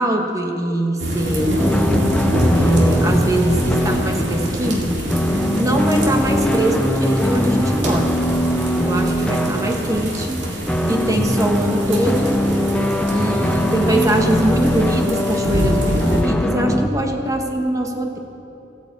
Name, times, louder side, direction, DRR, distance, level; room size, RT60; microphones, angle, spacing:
voice 1, 0.0-1.6 2.5-5.0 5.6-8.2 8.8-10.4 10.8-12.4 13.1-18.2, right 1 dB, 20° right, 2 dB, 1.1 m, -22 dB
sound 1, 1.0-16.2, equal, 70° right, 2.1 m, -25 dB
sound 2, 1.6-16.9, equal, 5° left, 0.6 m, -21 dB
14.5 x 9.1 x 8.0 m, 2.9 s
head